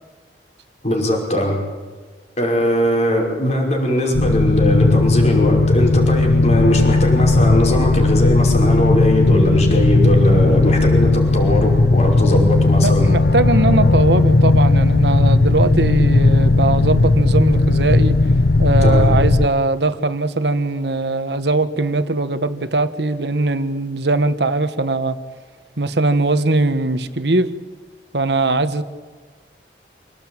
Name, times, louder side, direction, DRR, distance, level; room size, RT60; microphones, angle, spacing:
voice 1, 0.8-1.6 2.4-13.1 18.8-19.1, left 1 dB, 40° left, 0 dB, 5.6 m, -20 dB
sound 1, 4.1-19.5, left 2 dB, 60° left, 0.7 m, -15 dB
voice 2, 12.8-18.2 18.6-25.2 25.8-27.5 28.1-28.8, right 2 dB, 70° right, 11 dB, 1.4 m, -20 dB
27.5 x 18.0 x 8.9 m, 1.5 s
head